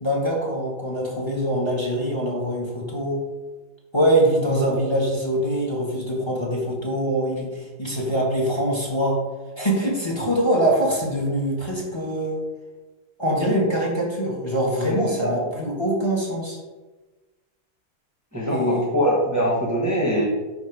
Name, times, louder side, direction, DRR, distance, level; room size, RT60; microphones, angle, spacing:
voice 1, 0.0-3.2 3.9-9.2 9.6-12.4 13.2-16.6 18.5-18.9, right 1 dB, 15° left, -2 dB, 1.5 m, -23 dB
voice 2, 14.9-15.5 18.3-20.2, equal, 10° right, -4 dB, 1.0 m, -23 dB
10.5 x 3.6 x 4.8 m, 1.2 s
omnidirectional pair, 2.1 m